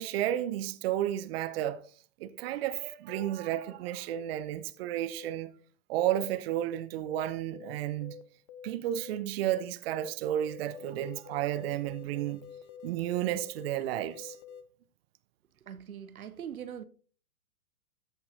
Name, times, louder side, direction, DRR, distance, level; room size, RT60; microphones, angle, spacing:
voice 1, 0.0-1.8 2.2-5.5 5.9-8.2 8.6-12.4 12.8-14.4, right 12 dB, 45° right, 0.7 m, -32 dB
sound 1, 3.1-3.3 4.1-4.3 5.1-5.3 6.1-6.3 6.6-6.8 7.1-7.3 7.5-7.7 8.0-8.2 8.5-8.7 9.0-9.2 9.4-9.6 9.9-10.1 10.4-14.6, left 8 dB, 20° left, 0.4 m, -48 dB
voice 2, 15.6-16.8, right 9 dB, 80° right, 0.7 m, -42 dB
14.0 x 5.4 x 2.6 m
figure-of-eight pair, 105°, 43 cm